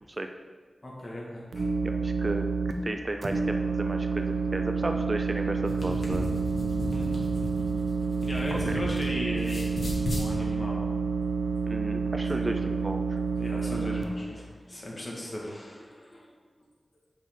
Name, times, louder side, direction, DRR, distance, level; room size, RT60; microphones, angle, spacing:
voice 1, 0.8-1.7 6.8-7.2 8.2-9.7 10.1-10.9 12.3-12.7 13.4-16.3, left 1 dB, 35° left, -3 dB, 1.5 m, -37 dB
sound 1, 1.5-2.7 3.2-14.0, right 5 dB, 85° right, 0.6 m, -29 dB
voice 2, 1.8-2.4 2.8-6.3 8.5-8.6 11.7-13.2, right 2 dB, 35° right, 5 dB, 0.4 m, -34 dB
sound 2, 5.5-9.0 9.3-10.3, left 1 dB, 75° left, 1.4 m, -35 dB
7.3 x 5.3 x 3.6 m, 1.5 s
wide cardioid pair, 95°, 0 cm